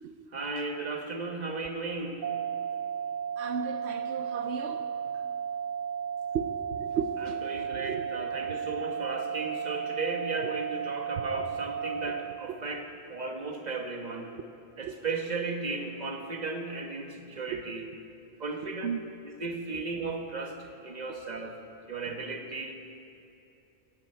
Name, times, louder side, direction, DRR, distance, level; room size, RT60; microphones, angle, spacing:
voice 1, 0.3-2.2 7.2-14.3 14.8-17.9 18.4-18.9 19.2-21.6 21.9-22.8, right 3 dB, 40° right, 3 dB, 1.4 m, -35 dB
sound 1, 2.2-12.2, right 7 dB, 60° right, 0.6 m, -34 dB
voice 2, 3.4-4.9 6.3-8.1 14.8-14.9 17.5-17.6 18.8-19.0, right 6 dB, 80° right, 7 dB, 0.9 m, -35 dB
15.5 x 12.5 x 4.5 m, 2.8 s
omnidirectional pair, 1.1 m